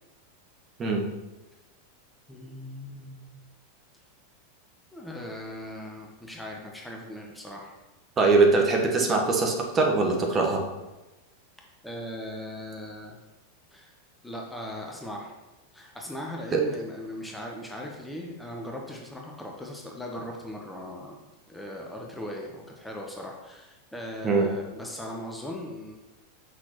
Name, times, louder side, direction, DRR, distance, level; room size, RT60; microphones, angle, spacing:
voice 1, 2.3-3.4 4.9-7.7 11.8-13.2 13.7-13.9 14.2-15.4 15.7-21.2 21.5-26.0, left 1 dB, 5° left, -1 dB, 0.9 m, -39 dB
voice 2, 8.2-10.6 16.5-16.6 24.2-24.5, right 3 dB, 25° right, 0 dB, 1.2 m, -22 dB
6.0 x 6.0 x 3.0 m, 1.1 s
figure-of-eight pair, 90°, 0 cm